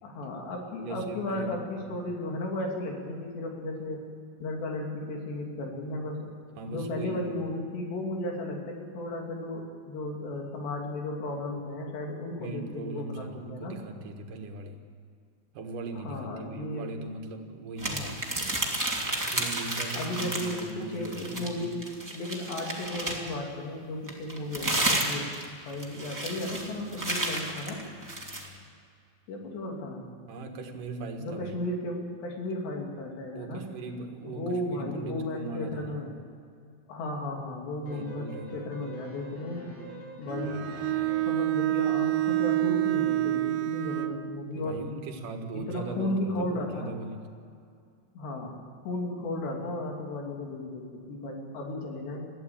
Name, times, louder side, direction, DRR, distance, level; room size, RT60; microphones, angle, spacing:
voice 1, 0.0-4.1 4.4-6.3 6.7-13.8 15.9-16.9 17.8-18.1 19.9-21.8 22.1-25.3 25.7-27.9 29.3-30.1 31.2-33.7 34.2-36.1 36.9-39.7 40.2-40.8 41.3-44.9 45.5-46.9 48.1-48.6 48.8-52.3, left 1 dB, 75° left, 1 dB, 5.0 m, -34 dB
voice 2, 0.8-1.6 1.9-2.0 6.6-7.4 12.4-14.8 15.5-18.3 19.3-21.8 30.3-31.6 33.3-36.1 37.9-38.7 44.5-47.3, right 3 dB, 60° right, 4 dB, 2.8 m, -39 dB
sound 1, 17.8-20.7 21.0-23.4 24.1-28.5, right 1 dB, 5° right, 1.6 m, -32 dB
sound 2, 37.8-41.5, equal, 45° left, 6.0 m, -45 dB
Bowed string instrument, 40.3-44.2, right 17 dB, 85° right, 3.1 m, -27 dB
21.0 x 15.0 x 8.7 m, 2.4 s
omnidirectional pair, 5.0 m